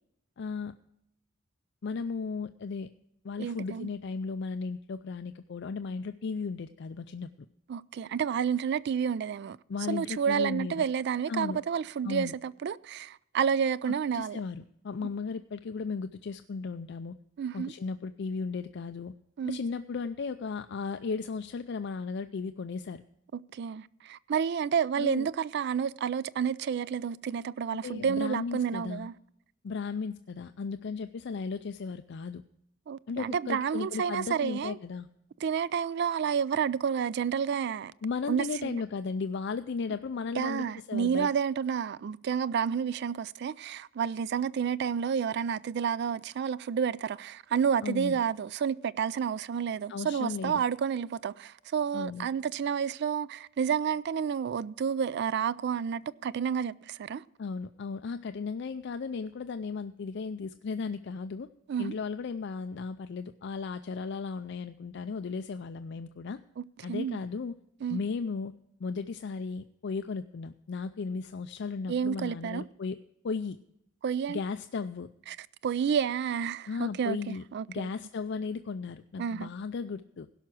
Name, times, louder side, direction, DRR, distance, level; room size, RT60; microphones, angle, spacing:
voice 1, 0.4-0.7 1.8-2.9 3.2-7.3 9.7-10.8 11.3-11.6 12.0-12.3 14.1-17.1 17.5-19.1 19.4-23.0 25.0-25.3 27.8-29.1 29.6-32.4 33.1-35.1 38.0-41.3 47.8-48.2 49.9-50.6 51.9-52.3 57.4-61.5 61.8-66.4 66.8-67.6 67.9-68.5 68.8-73.0 73.2-73.6 74.3-75.1 76.7-80.3, left 4 dB, 60° left, 0.4 m, -35 dB
voice 2, 3.4-3.9 7.7-9.6 9.9-14.4 17.4-17.7 19.4-19.6 23.5-29.1 32.9-34.8 35.4-37.9 38.3-38.8 40.4-57.2 61.7-62.0 66.6-67.2 67.8-68.0 71.9-72.6 74.0-74.4 75.3-75.4 75.6-77.9 79.2-79.5, right 7 dB, 55° right, 0.3 m, -30 dB
16.5 x 5.8 x 6.1 m
head